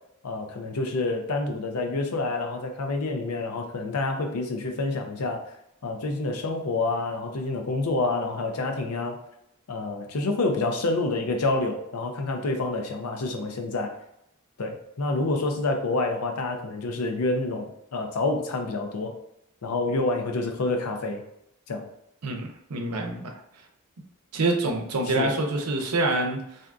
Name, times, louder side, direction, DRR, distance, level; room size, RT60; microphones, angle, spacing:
voice 1, 0.2-5.6 5.8-9.2 9.7-13.9 14.6-19.1 19.6-21.2 21.7-21.9 25.1-25.3, left 2 dB, 85° left, 4 dB, 0.6 m, -28 dB
voice 2, 22.2-23.3 24.3-26.6, right 2 dB, 85° right, 2 dB, 0.6 m, -26 dB
3.4 x 2.6 x 2.4 m, 0.79 s
head